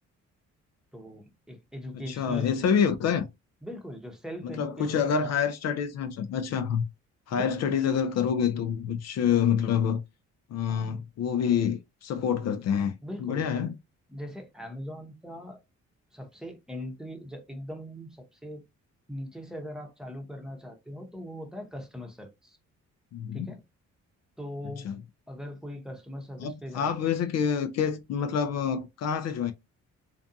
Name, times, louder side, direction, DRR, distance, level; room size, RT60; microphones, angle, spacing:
voice 1, 0.9-2.5 3.6-5.3 7.3-7.8 10.7-11.0 13.0-13.4 14.1-15.6 16.1-18.6 19.1-22.6 23.3-23.6 24.4-24.9 25.3-27.0, equal, ahead, 0.8 m, -40 dB
voice 2, 1.9-3.3 4.4-6.8 7.3-10.0 10.5-12.9 13.2-13.7 23.1-23.5 24.8-24.9 26.4-29.5, left 7 dB, 60° left, 0.4 m, -27 dB
2.5 x 2.3 x 2.5 m
cardioid pair, 90°, 30 cm